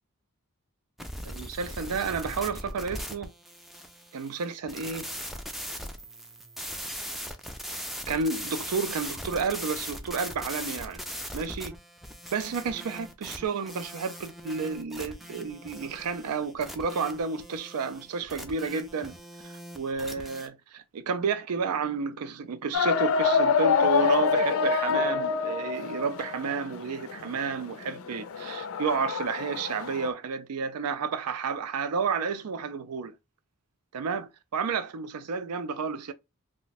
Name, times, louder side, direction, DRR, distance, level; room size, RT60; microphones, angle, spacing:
sound 1, 1.0-20.5, equal, ahead, 0.3 m, -40 dB
voice 1, 1.2-3.3 4.1-5.1 8.1-11.0 11.3-11.7 12.3-19.1 19.4-33.1 33.9-36.1, right 5 dB, 90° right, 0.4 m, -31 dB
sound 2, 22.7-30.1, left 5 dB, 65° left, 0.4 m, -26 dB
2.5 x 2.2 x 3.9 m
head